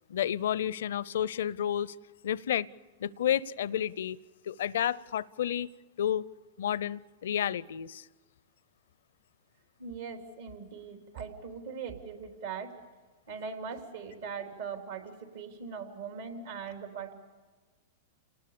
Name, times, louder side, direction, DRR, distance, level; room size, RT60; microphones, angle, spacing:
voice 1, 0.1-1.9 2.2-2.7 3.0-4.2 4.5-5.7 6.0-6.2 6.6-8.1, left 10 dB, 75° left, 21 dB, 0.6 m, -30 dB
voice 2, 9.8-12.8 13.3-17.1, right 6 dB, 75° right, 5 dB, 3.9 m, -40 dB
29.5 x 19.5 x 7.0 m, 1.3 s
hypercardioid pair, 115°, 0 cm